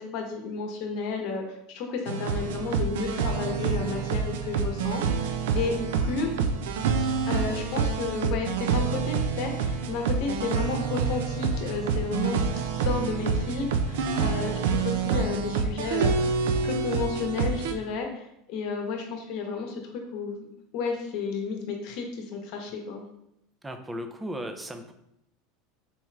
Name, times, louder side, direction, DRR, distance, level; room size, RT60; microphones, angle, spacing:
voice 1, 0.0-6.3 7.3-16.3 16.6-20.5 20.7-23.0, left 4 dB, 60° left, 3 dB, 0.8 m, -32 dB
sound 1, 2.1-17.7, right 5 dB, 85° right, 0.3 m, -27 dB
voice 2, 14.0-14.3 23.6-24.9, equal, 15° right, 7 dB, 0.4 m, -36 dB
4.1 x 2.3 x 3.2 m, 0.77 s
supercardioid pair, 120°, 0 cm